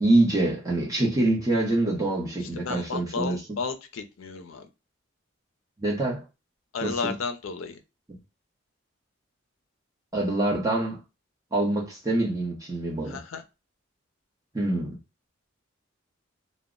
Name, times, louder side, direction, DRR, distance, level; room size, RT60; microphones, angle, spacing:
voice 1, 0.0-3.4 5.8-6.2 6.8-7.1 10.1-11.0 11.5-13.2 14.5-14.9, right 2 dB, 15° right, 0.7 m, -25 dB
voice 2, 2.6-4.7 6.7-7.8 13.1-13.4, left 5 dB, 75° left, 0.4 m, -33 dB
2.1 x 2.0 x 3.6 m
head